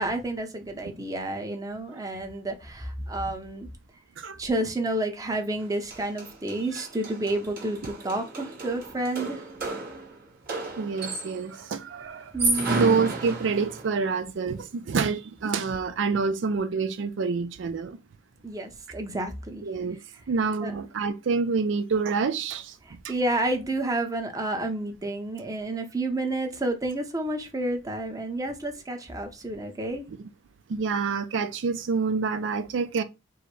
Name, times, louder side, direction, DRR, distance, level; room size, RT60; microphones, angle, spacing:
voice 1, 0.0-3.7 4.4-9.4 12.3-12.8 18.4-19.7 20.6-20.8 22.8-30.1, right 1 dB, 20° right, 0.8 m, -30 dB
sound 1, 5.6-5.7 5.9-11.5 12.2-14.0, right 2 dB, 50° right, 1.7 m, -33 dB
voice 2, 10.8-12.3 12.7-18.0 19.6-20.0 20.3-22.7 30.7-33.0, right 4 dB, 75° right, 0.4 m, -27 dB
4.7 x 2.1 x 4.6 m
head